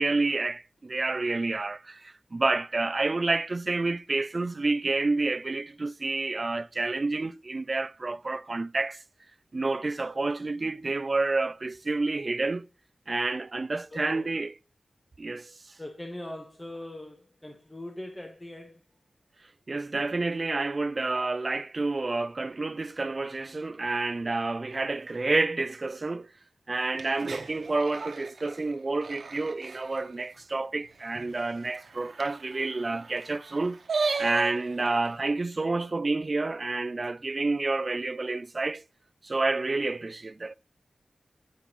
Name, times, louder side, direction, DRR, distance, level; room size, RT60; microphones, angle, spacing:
voice 1, 0.0-9.0 9.5-12.7 13.1-14.5 15.2-15.5 19.7-26.3 26.7-33.8 34.2-38.8 39.2-40.5, right 3 dB, 45° right, 0.3 m, -29 dB
voice 2, 13.9-14.3 15.8-18.8, left 1 dB, 15° left, 1.2 m, -41 dB
sound 1, 26.9-30.1 30.5-30.6 30.8-30.9 31.1-35.1, right 4 dB, 80° right, 1.1 m, -36 dB
9.6 x 9.4 x 3.0 m
wide cardioid pair, 85°, 0 cm